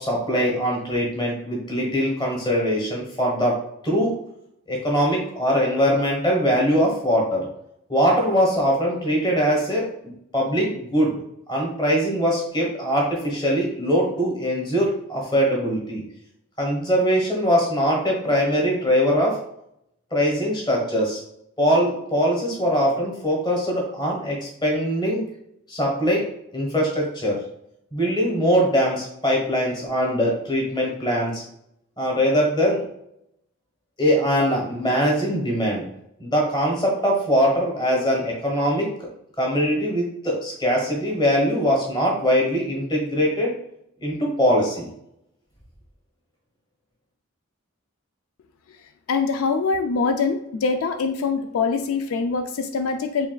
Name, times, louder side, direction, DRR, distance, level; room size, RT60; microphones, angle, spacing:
voice 1, 0.0-3.6 3.8-4.2 4.7-7.5 7.9-9.9 10.3-11.2 11.5-16.0 16.6-19.4 20.1-21.2 21.6-25.2 25.7-26.2 26.5-27.4 27.9-31.4 32.0-32.8 34.0-35.8 36.2-38.9 39.4-43.5 44.0-44.9, equal, 20° left, -2 dB, 1.1 m, -22 dB
voice 2, 49.1-53.3, left 4 dB, 80° left, 7 dB, 0.3 m, -24 dB
4.6 x 3.3 x 2.2 m, 0.76 s
head